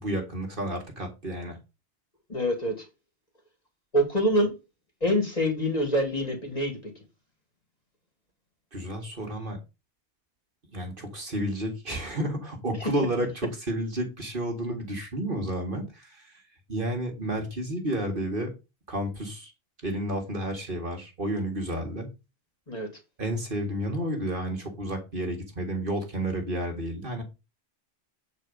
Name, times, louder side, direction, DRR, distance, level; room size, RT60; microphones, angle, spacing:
voice 1, 0.0-1.6 8.7-9.6 10.7-16.3 16.7-18.5 18.9-19.5 19.8-22.1 23.2-27.2, right 1 dB, 50° right, 2.1 m, -31 dB
voice 2, 2.3-2.9 3.9-4.5 5.0-6.9 12.8-12.9 22.7-22.9, equal, 35° left, 2.8 m, -25 dB
8.9 x 4.4 x 5.1 m
omnidirectional pair, 1.2 m